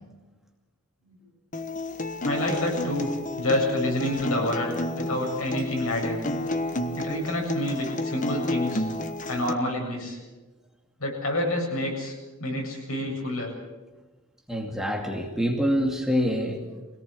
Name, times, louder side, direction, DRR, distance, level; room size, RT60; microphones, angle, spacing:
Acoustic guitar, 1.5-9.5, left 2 dB, 35° left, 1.1 m, -31 dB
voice 1, 2.2-3.1 3.4-6.2 7.0-8.8 9.3-10.2 11.0-13.5, left 1 dB, 80° left, 0 dB, 7.7 m, -28 dB
voice 2, 14.5-16.6, equal, ahead, 0 dB, 2.4 m, -26 dB
24.0 x 18.0 x 8.4 m, 1.2 s
head